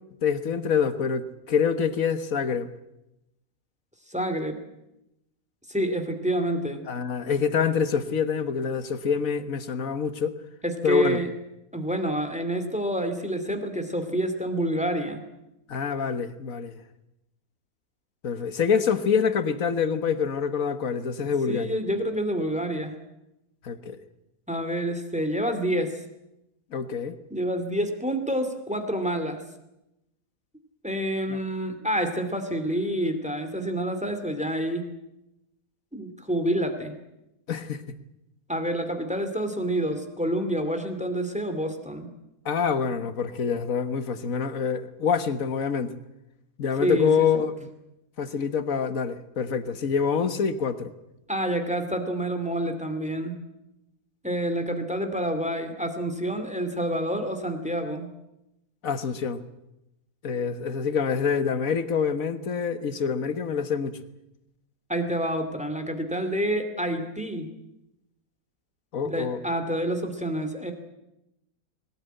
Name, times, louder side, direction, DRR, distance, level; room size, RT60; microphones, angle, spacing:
voice 1, 0.2-2.7 6.9-10.4 10.8-11.2 15.7-16.8 18.2-21.8 23.6-24.0 26.7-27.2 37.5-37.8 42.5-45.9 46.6-47.7 48.2-50.9 58.8-59.4 60.2-63.9 68.9-69.4, left 6 dB, 60° left, 12 dB, 1.6 m, -26 dB
voice 2, 4.1-4.6 5.7-6.8 10.6-11.3 11.7-15.2 21.5-22.9 24.5-26.0 27.3-29.4 30.8-34.9 35.9-36.9 38.5-42.1 46.8-47.4 51.3-53.4 54.2-58.1 64.9-67.5 69.0-70.7, right 1 dB, 5° right, 7 dB, 2.4 m, -28 dB
21.0 x 18.0 x 9.2 m, 0.90 s
omnidirectional pair, 1.6 m